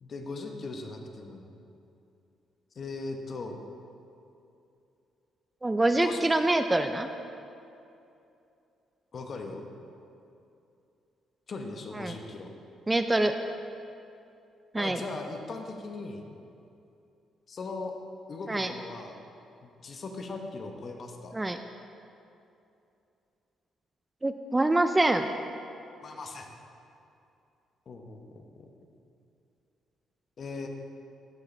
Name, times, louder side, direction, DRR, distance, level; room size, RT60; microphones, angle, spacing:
voice 1, 0.0-1.5 2.7-3.6 6.0-6.3 9.1-9.7 11.5-12.5 14.8-16.3 17.5-17.9 18.3-19.2 19.6-21.3 26.0-26.5 27.9-28.7 30.4-30.7, left 3 dB, 50° left, 4 dB, 0.8 m, -39 dB
voice 2, 5.6-7.1 11.9-12.1 12.9-13.3 14.7-15.0 18.5-18.7 21.3-21.6 24.2-25.3, right 2 dB, 15° right, 8 dB, 0.3 m, -25 dB
13.0 x 4.9 x 3.2 m, 2.7 s
cardioid pair, 90°, 0 cm